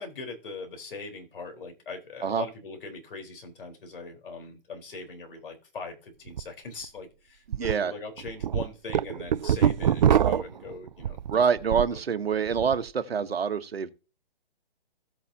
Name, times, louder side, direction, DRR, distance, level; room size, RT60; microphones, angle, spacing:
voice 1, 0.0-12.0 13.1-13.3, left 3 dB, 65° left, 4.4 m, -41 dB
sound 1, 6.3-6.4 6.8-6.9 7.5-7.7 8.2-12.0 12.3-12.8, right 9 dB, 50° right, 0.5 m, -24 dB
voice 2, 7.5-7.9 11.3-13.9, right 6 dB, 85° right, 1.2 m, -26 dB
15.5 x 9.0 x 2.9 m
hypercardioid pair, 155°, 30 cm